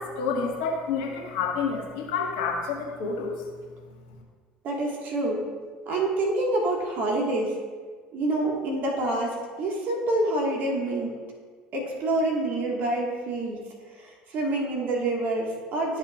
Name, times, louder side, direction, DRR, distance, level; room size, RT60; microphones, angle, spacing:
voice 1, 0.0-3.4, left 5 dB, 75° left, -2 dB, 1.9 m, -29 dB
voice 2, 4.6-5.5 5.9-7.6 8.1-11.1 11.7-13.6 14.0-16.0, right 2 dB, 55° right, -1 dB, 1.8 m, -27 dB
13.5 x 5.5 x 2.5 m, 1.5 s
hypercardioid pair, 70°, 4 cm